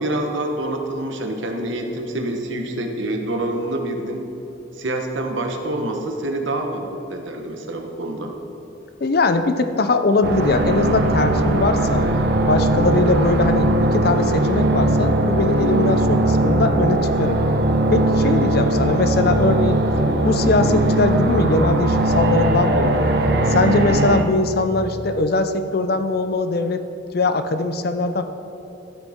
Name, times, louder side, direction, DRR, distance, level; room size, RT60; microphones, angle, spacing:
voice 1, 0.0-4.2 4.7-8.3, right 1 dB, 70° right, 4 dB, 1.1 m, -26 dB
voice 2, 9.0-12.1 12.5-17.4 17.9-19.8 20.2-23.1 23.5-26.8 27.1-28.2, left 3 dB, 50° left, 9 dB, 0.5 m, -21 dB
sound 1, 10.2-24.2, right 1 dB, 55° right, 0.7 m, -19 dB
12.5 x 8.3 x 3.6 m, 3.0 s
head